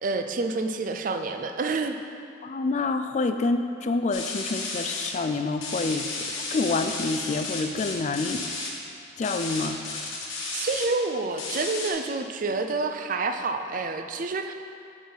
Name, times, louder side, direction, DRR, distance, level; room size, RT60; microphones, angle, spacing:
voice 1, 0.0-2.0 10.5-14.5, right 3 dB, 45° right, 7 dB, 0.4 m, -28 dB
voice 2, 2.4-6.1 6.5-8.4 9.2-10.0, left 3 dB, 35° left, 8 dB, 0.3 m, -27 dB
sound 1, 4.1-5.1 5.6-8.7 9.2-10.8 11.4-11.9, left 3 dB, 90° left, 1.3 m, -33 dB
8.5 x 4.0 x 5.5 m, 2.4 s
head